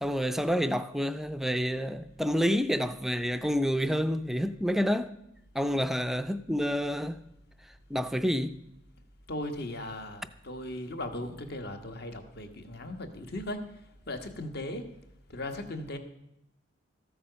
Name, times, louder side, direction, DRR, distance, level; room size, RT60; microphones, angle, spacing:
voice 1, 0.0-5.1 5.5-7.2 7.9-8.6, equal, ahead, 0.4 m, -28 dB
voice 2, 9.3-13.6 14.1-14.8 15.3-16.0, left 1 dB, 55° left, 1.4 m, -37 dB
14.0 x 8.7 x 6.7 m
head